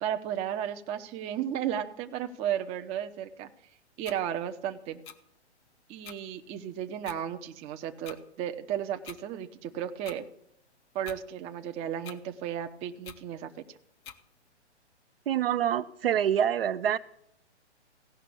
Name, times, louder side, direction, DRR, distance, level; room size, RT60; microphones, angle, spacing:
voice 1, 0.0-3.5 4.0-5.0 5.9-10.2 10.9-13.5, right 10 dB, 20° right, 0.7 m, -34 dB
sound 1, 4.0-4.2 5.0-5.2 6.0-6.2 7.0-7.2 8.0-8.2 9.0-9.2 10.0-10.2 11.0-11.2 12.0-12.2 13.0-13.2 14.0-14.2, left 8 dB, 15° left, 0.6 m, -45 dB
voice 2, 15.3-17.0, right 10 dB, 55° right, 0.7 m, -26 dB
16.0 x 5.9 x 8.3 m
figure-of-eight pair, 125°, 35 cm